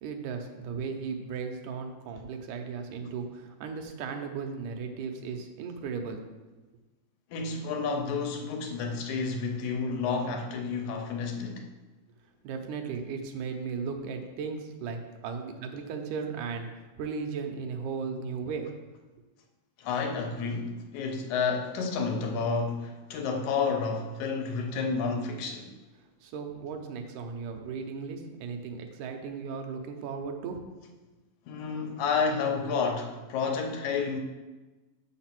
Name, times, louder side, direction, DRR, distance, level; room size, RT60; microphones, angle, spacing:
voice 1, 0.0-6.2 12.4-18.7 26.2-30.6, right 5 dB, 90° right, 2.3 m, -36 dB
voice 2, 7.3-11.6 19.8-25.7 31.5-34.2, left 5 dB, 80° left, 2.2 m, -30 dB
6.6 x 5.2 x 5.9 m
omnidirectional pair, 3.4 m